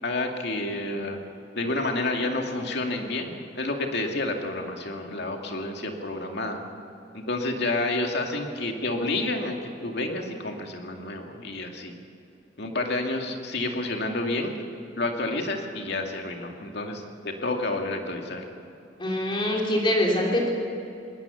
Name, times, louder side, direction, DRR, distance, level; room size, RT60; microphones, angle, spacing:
voice 1, 0.0-1.2 1.5-3.3 3.6-6.6 7.1-11.9 12.6-14.5 15.0-18.4, left 2 dB, 60° left, 3 dB, 2.4 m, -29 dB
voice 2, 19.0-20.5, left 1 dB, 25° left, -1 dB, 3.0 m, -24 dB
20.5 x 19.0 x 7.1 m, 2.7 s
head